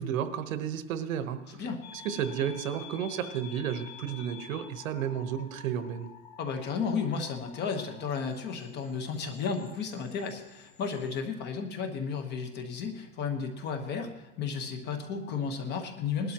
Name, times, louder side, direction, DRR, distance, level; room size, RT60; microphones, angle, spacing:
voice 1, 0.0-1.4 2.0-6.1, right 9 dB, 70° right, 9 dB, 1.2 m, -32 dB
voice 2, 1.5-1.8 6.4-16.3, left 5 dB, 25° left, 5 dB, 1.2 m, -33 dB
sound 1, 1.8-11.2, left 7 dB, 60° left, 1.9 m, -50 dB
19.5 x 12.5 x 3.0 m, 1.1 s
supercardioid pair, 155°, 41 cm